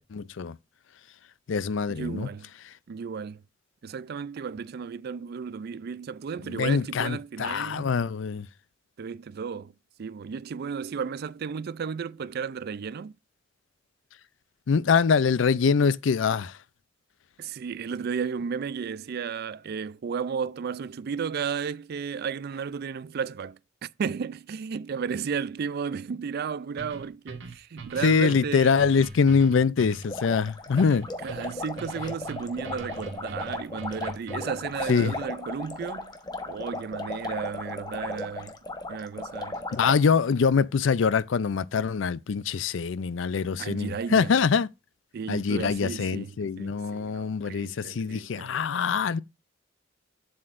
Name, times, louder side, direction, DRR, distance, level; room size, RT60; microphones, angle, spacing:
voice 1, 0.1-0.6 1.5-2.3 6.5-8.5 14.7-16.6 28.0-31.1 34.9-35.1 39.7-44.7 45.3-49.2, left 5 dB, 70° left, 0.4 m, -24 dB
voice 2, 1.9-2.5 2.9-3.4 3.8-7.9 9.0-9.7 10.0-13.2 17.4-28.8 31.2-36.1 36.5-38.5 38.9-39.6 43.6-44.3 45.1-48.5, right 6 dB, 55° right, 0.4 m, -34 dB
sound 1, 26.8-34.7, right 2 dB, 75° right, 2.0 m, -42 dB
sound 2, 30.0-40.0, left 2 dB, 20° left, 1.1 m, -36 dB
7.9 x 7.5 x 2.5 m
head